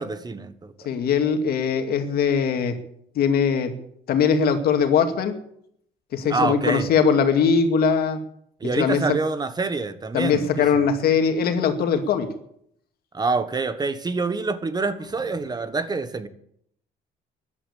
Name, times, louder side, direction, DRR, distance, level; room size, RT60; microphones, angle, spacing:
voice 1, 0.0-0.7 6.3-6.9 8.6-10.8 13.1-16.3, right 3 dB, 25° right, 11 dB, 1.3 m, -26 dB
voice 2, 0.9-2.7 3.2-3.7 4.1-5.3 6.1-8.2 8.8-9.0 10.1-12.3, left 6 dB, 65° left, 6 dB, 2.3 m, -21 dB
14.0 x 11.0 x 8.5 m, 0.71 s
cardioid pair, 110°, 17 cm